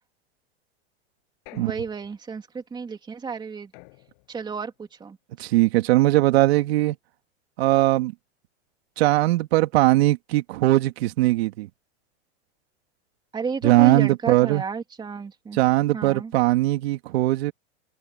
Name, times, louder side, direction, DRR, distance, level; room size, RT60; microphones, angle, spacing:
sound 1, 1.5-2.5 3.7-4.6, left 36 dB, 50° left, 7.2 m, -51 dB
voice 1, 1.5-3.7 4.3-5.2 13.3-15.6 15.9-16.3, right 5 dB, 15° right, 2.9 m, -32 dB
voice 2, 5.4-7.0 7.6-8.1 9.0-11.7 13.6-14.6 15.5-17.5, right 17 dB, 65° right, 2.3 m, -20 dB
supercardioid pair, 145°, 33 cm